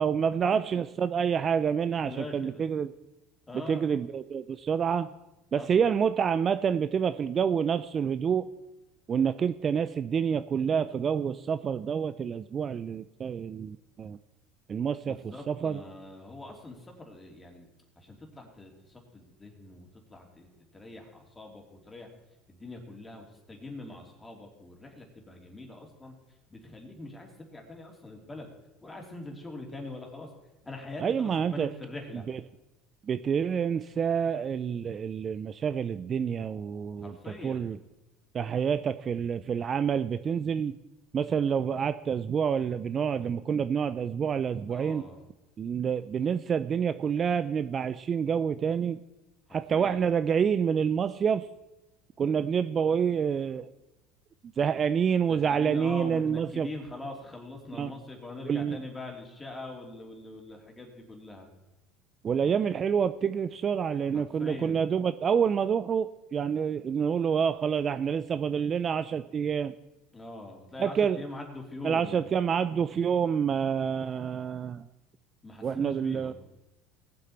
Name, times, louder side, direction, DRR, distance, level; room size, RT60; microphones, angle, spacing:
voice 1, 0.0-2.9 3.7-5.1 5.5-8.5 9.1-14.2 14.7-15.8 31.0-31.7 32.3-32.4 33.1-37.1 37.4-37.8 38.3-40.8 41.1-45.0 45.6-49.0 49.5-51.5 52.2-53.7 54.6-56.7 57.8-57.9 58.5-58.8 62.2-69.7 70.8-71.2 71.8-74.9 75.6-76.3, right 7 dB, 35° right, 13 dB, 0.4 m, -28 dB
voice 2, 2.0-2.6 3.5-3.9 5.6-5.9 15.0-17.7 18.0-22.1 22.5-26.1 26.5-28.5 28.8-30.3 30.6-32.2 37.0-37.7 44.7-45.3 49.5-50.0 55.3-61.5 64.1-64.8 70.1-72.2 75.4-76.3, left 2 dB, 15° left, 1 dB, 3.2 m, -43 dB
19.0 x 7.8 x 4.4 m, 0.98 s
supercardioid pair, 95°, 0 cm